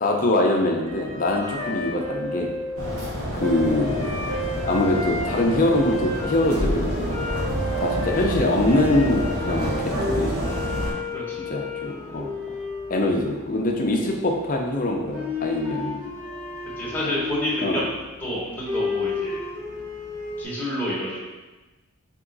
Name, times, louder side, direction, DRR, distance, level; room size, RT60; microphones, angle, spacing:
voice 1, 0.0-2.5 3.3-4.1 4.6-7.1 7.8-10.5 11.4-12.3 12.9-16.0 17.6-17.8, left 1 dB, 40° left, 1 dB, 0.5 m, -23 dB
sound 1, 0.9-20.4, left 3 dB, 65° right, 1.5 m, -32 dB
sound 2, 2.8-10.9, equal, 85° right, 1.1 m, -28 dB
voice 2, 11.1-11.4 16.8-17.8 18.2-19.4 20.4-21.2, equal, 10° left, -7 dB, 0.9 m, -29 dB
3.6 x 3.0 x 3.8 m, 1.2 s
head